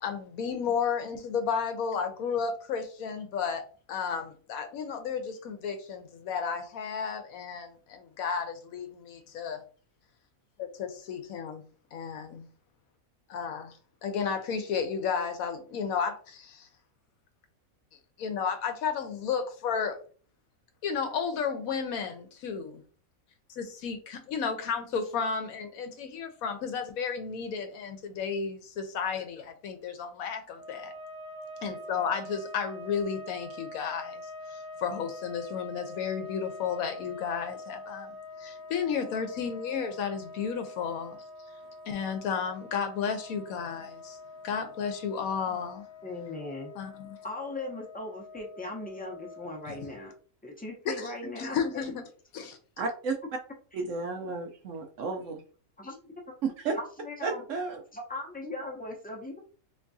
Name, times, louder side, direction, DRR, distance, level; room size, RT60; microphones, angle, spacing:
voice 1, 0.0-9.6 10.6-11.6 11.9-12.5 13.3-13.7 14.0-16.7 18.2-20.0 20.8-22.8 23.6-30.9 31.6-41.2 41.9-44.2 44.4-45.9 46.8-47.2 50.9-52.0 52.3-52.5, left 6 dB, 75° left, 1.1 m, -33 dB
sound 1, 30.5-50.1, left 2 dB, 35° left, 0.8 m, -45 dB
voice 2, 46.0-46.7 47.2-50.1 50.4-51.6 55.8-56.1 56.8-57.5 57.9-59.4, left 2 dB, 10° left, 0.4 m, -38 dB
voice 3, 52.8-53.1 53.7-55.4 56.4-56.8 57.2-57.8, right 4 dB, 65° right, 0.9 m, -32 dB
3.4 x 3.0 x 2.6 m
omnidirectional pair, 1.5 m